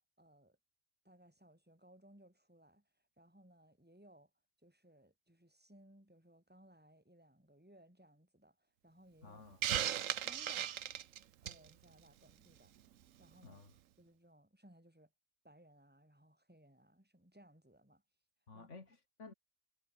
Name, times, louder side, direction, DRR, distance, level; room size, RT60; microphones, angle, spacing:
voice 1, 0.2-0.6 1.0-2.9 3.2-4.3 4.6-9.4 9.8-10.8 11.4-12.8 13.2-13.7 14.0-15.1 15.4-18.0 18.5-18.7, right 1 dB, 5° right, 4.9 m, -63 dB
voice 2, 9.2-9.6 13.4-13.7 18.5-19.3, left 4 dB, 65° left, 2.9 m, -54 dB
Hiss, 9.6-11.7, right 11 dB, 75° right, 1.2 m, -36 dB
omnidirectional pair, 1.4 m